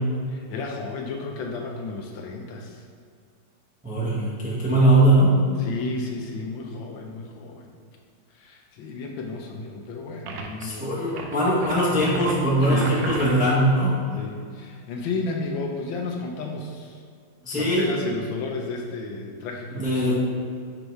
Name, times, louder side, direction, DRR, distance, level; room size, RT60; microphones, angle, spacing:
voice 1, 0.3-2.8 5.6-7.7 8.3-10.9 12.7-13.0 14.2-17.0 17.5-20.2, left 3 dB, 75° left, 2 dB, 1.3 m, -33 dB
voice 2, 3.8-5.4 10.6-14.0 17.4-17.9 19.7-20.2, right 1 dB, 5° right, -7 dB, 0.7 m, -20 dB
sound 1, 10.3-10.6 11.1-13.6, right 4 dB, 85° right, 1.5 m, -36 dB
5.4 x 4.0 x 4.6 m, 2.3 s
omnidirectional pair, 2.3 m